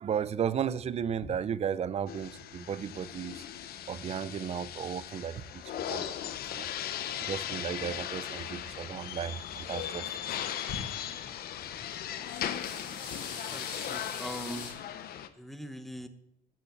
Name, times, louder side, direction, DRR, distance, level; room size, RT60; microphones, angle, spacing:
voice 1, 0.0-3.4 3.9-6.7 7.2-10.4, right 8 dB, 40° right, 0.6 m, -35 dB
sound 1, 1.1-4.9 5.2-6.2 6.5-6.6 7.0-8.4 8.8-10.0 10.3-11.4 11.7-14.7, left 5 dB, 80° left, 5.3 m, -45 dB
sound 2, 2.1-15.3, left 10 dB, 65° left, 0.9 m, -38 dB
voice 2, 13.5-14.7 15.4-16.1, equal, ahead, 1.1 m, -41 dB
10.5 x 6.7 x 7.2 m
cardioid pair, 110°, 17 cm